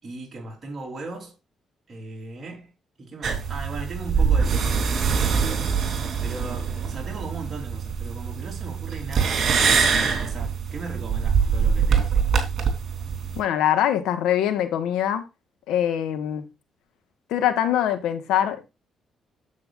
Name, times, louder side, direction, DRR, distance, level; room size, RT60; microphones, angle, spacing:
voice 1, 0.0-1.3 1.9-2.7 3.0-4.8 5.1-5.8 6.2-12.2, right 2 dB, 30° right, 3.6 m, -37 dB
sound 1, 3.2-13.4, right 6 dB, 55° right, 3.2 m, -23 dB
voice 2, 13.4-15.2 15.7-16.4 17.3-18.7, left 10 dB, 90° left, 1.4 m, -23 dB
9.7 x 7.8 x 2.5 m
cardioid pair, 90°, 0 cm